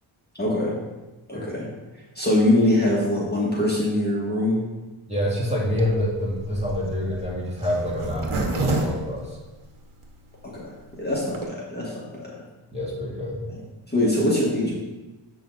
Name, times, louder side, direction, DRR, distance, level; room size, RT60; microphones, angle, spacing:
voice 1, 0.4-0.8 1.3-1.7 2.2-4.6 10.4-12.4 13.9-14.8, left 1 dB, 20° left, -5 dB, 2.0 m, -23 dB
voice 2, 5.1-9.4 12.7-13.4, left 1 dB, 15° right, -5 dB, 2.3 m, -27 dB
Zipper (clothing), 5.7-10.0 10.5-10.6 10.8-10.9 11.1-11.5, right 2 dB, 85° right, 1.3 m, -29 dB
8.1 x 5.8 x 4.2 m, 1.1 s
wide cardioid pair, 95°, 48 cm